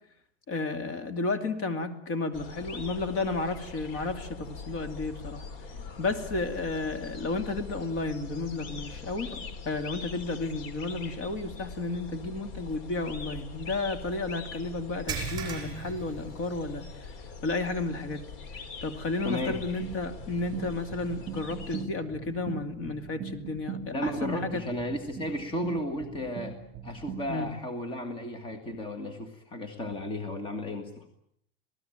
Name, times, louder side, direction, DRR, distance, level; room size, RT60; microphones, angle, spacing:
voice 1, 0.5-5.4 6.0-17.1 17.4-18.3 18.8-24.6 27.3-27.5, left 3 dB, 40° left, 9 dB, 2.6 m, -32 dB
sound 1, 2.3-21.9, left 4 dB, 65° left, 3.4 m, -43 dB
sound 2, 15.1-17.0 17.3-17.5 18.0-18.1 19.8-19.9, right 5 dB, 15° right, 7.0 m, -37 dB
voice 2, 19.2-19.6 23.9-26.6 26.8-31.1, left 1 dB, 15° left, 8 dB, 1.8 m, -34 dB
sound 3, 19.8-27.5, right 6 dB, 30° right, 2.5 m, -41 dB
27.5 x 18.5 x 9.1 m, 0.71 s
cardioid pair, 170°, 31 cm